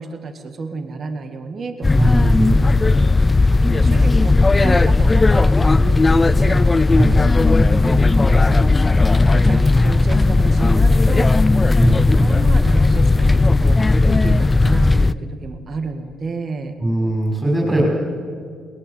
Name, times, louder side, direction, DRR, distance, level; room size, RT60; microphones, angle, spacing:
voice 1, 0.0-2.3 3.7-6.7 7.4-8.7 9.3-11.3 12.1-13.8 14.0-16.8, right 4 dB, 50° right, 7 dB, 2.0 m, -31 dB
sound 1, 1.8-15.1, left 3 dB, 25° left, 0.5 m, -15 dB
voice 2, 1.9-2.5 6.9-7.2 11.8-12.1 16.8-17.9, right 1 dB, 15° right, -3 dB, 6.2 m, -20 dB
21.0 x 20.0 x 8.6 m, 2.1 s
cardioid pair, 90°, 0 cm